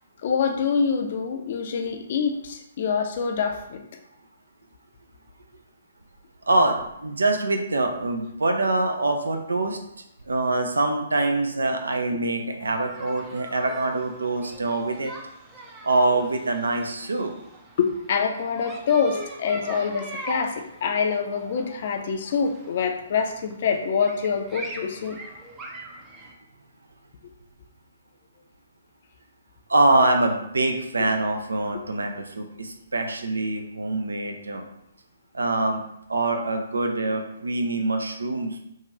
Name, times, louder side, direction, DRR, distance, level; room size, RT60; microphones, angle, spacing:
voice 1, 0.2-3.8 17.8-25.2, left 6 dB, 50° left, 4 dB, 0.4 m, -25 dB
voice 2, 6.5-9.8 10.3-15.1 15.8-17.3 19.1-19.2 29.7-34.6 35.3-35.8 36.1-38.6, right 2 dB, 75° right, 4 dB, 0.4 m, -24 dB
sound 1, 12.6-26.3, right 2 dB, 15° right, 0.4 m, -42 dB
2.7 x 2.4 x 3.0 m, 0.79 s
figure-of-eight pair, 130°, 0 cm